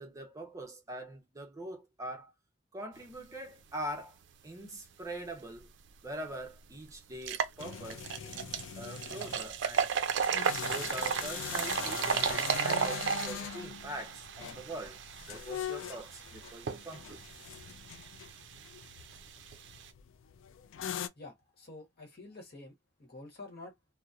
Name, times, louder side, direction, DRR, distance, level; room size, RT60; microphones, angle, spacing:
voice 1, 0.0-2.3 2.7-4.1 4.4-5.7 6.0-9.9 10.7-15.0 15.3-17.2, right 1 dB, 15° right, 0.6 m, -43 dB
sound 1, 5.9-6.0 6.4-6.5 7.1-19.9, right 7 dB, 60° right, 0.4 m, -35 dB
sound 2, 7.6-21.1, left 9 dB, 70° left, 0.3 m, -42 dB
voice 2, 21.1-22.7 23.0-23.8, left 2 dB, 50° left, 1.0 m, -48 dB
2.7 x 2.0 x 2.3 m
head